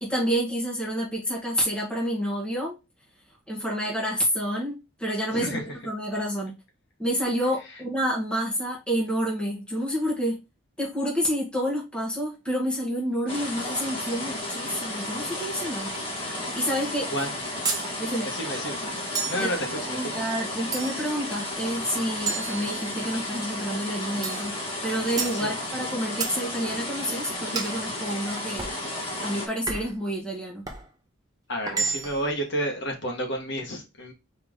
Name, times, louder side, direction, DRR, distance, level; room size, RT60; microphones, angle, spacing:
voice 1, 0.0-2.7 3.5-6.6 7.0-10.4 10.8-15.9 16.5-17.1 18.0-18.3 19.4-19.5 19.8-24.5 24.8-28.7 29.2-30.7, equal, 5° left, 1.4 m, -29 dB
voice 2, 5.3-5.6 17.1-17.3 18.2-18.8 19.3-19.8 25.4-25.5 31.5-34.1, equal, 60° left, 1.5 m, -30 dB
sound 1, 13.3-29.5, left 1 dB, 25° left, 1.6 m, -33 dB
sound 2, 17.6-17.9 19.1-19.5 20.7-21.2 22.3-23.2 24.2-24.5 25.2-25.4 26.2-26.4 27.5-27.8 28.6-28.8 29.7-30.0 30.6-30.9 31.7-32.3, right 4 dB, 20° right, 0.9 m, -31 dB
4.4 x 3.2 x 3.7 m
head